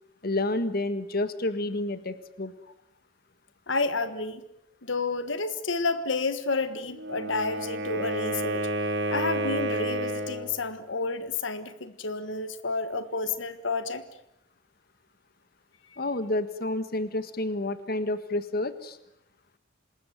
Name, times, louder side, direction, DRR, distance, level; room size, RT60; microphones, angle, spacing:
voice 1, 0.2-2.5 16.0-19.0, left 2 dB, 50° left, 12 dB, 1.5 m, -29 dB
voice 2, 3.7-4.4 4.8-8.7 9.1-14.0, left 3 dB, 70° left, 12 dB, 1.5 m, -30 dB
Wind instrument woodwind instrument, 6.9-10.5, right 1 dB, 60° right, 5.5 m, -30 dB
27.0 x 20.5 x 9.3 m, 0.80 s
head